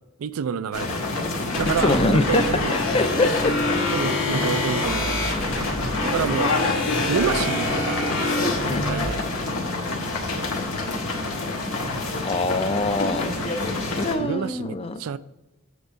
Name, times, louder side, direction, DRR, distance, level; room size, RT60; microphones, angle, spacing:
voice 1, 0.2-1.0 1.6-2.8 3.9-5.2 6.0-6.5 7.1-8.4 8.9-9.2 13.8-15.2, right 7 dB, 80° right, 0.4 m, -28 dB
sound 1, 0.7-14.1, left 2 dB, 80° left, 1.6 m, -27 dB
sound 2, 1.5-9.1, left 2 dB, 65° left, 1.6 m, -27 dB
voice 2, 1.8-3.8 8.7-8.9 12.2-13.4 14.0-15.0, left 2 dB, 25° left, 0.5 m, -24 dB
8.0 x 3.5 x 6.2 m
head